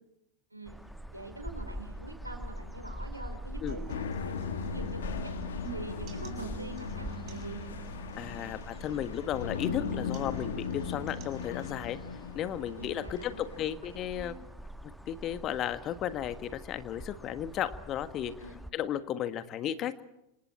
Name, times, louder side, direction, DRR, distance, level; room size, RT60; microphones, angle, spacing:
sound 1, 0.7-18.7, equal, ahead, 1.4 m, -44 dB
voice 1, 1.1-5.3 5.7-7.6 12.6-13.6 13.9-14.4 18.2-18.6, right 2 dB, 85° right, 6 dB, 4.9 m, -45 dB
sound 2, 3.7-11.7, right 9 dB, 35° right, 5.3 m, -47 dB
sound 3, 3.9-13.7, left 7 dB, 65° left, 2.2 m, -38 dB
voice 2, 8.2-12.0 12.3-14.3 14.8-18.3 18.7-20.0, left 10 dB, 35° left, 12 dB, 1.6 m, -34 dB
29.5 x 27.0 x 4.5 m, 0.84 s
figure-of-eight pair, 90°, 0 cm